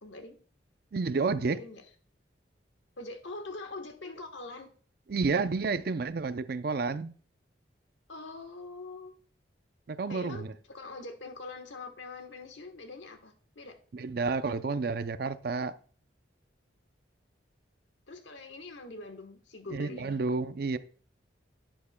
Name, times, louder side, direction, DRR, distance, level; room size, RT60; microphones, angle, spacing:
voice 1, 0.0-0.4 1.4-1.8 3.0-4.7 8.1-9.2 10.1-13.8 18.1-20.2, left 3 dB, 85° left, 1.3 m, -43 dB
voice 2, 0.9-1.6 5.1-7.1 9.9-10.5 13.9-15.7 19.7-20.8, right 4 dB, 55° right, 0.5 m, -30 dB
11.0 x 9.6 x 2.2 m
head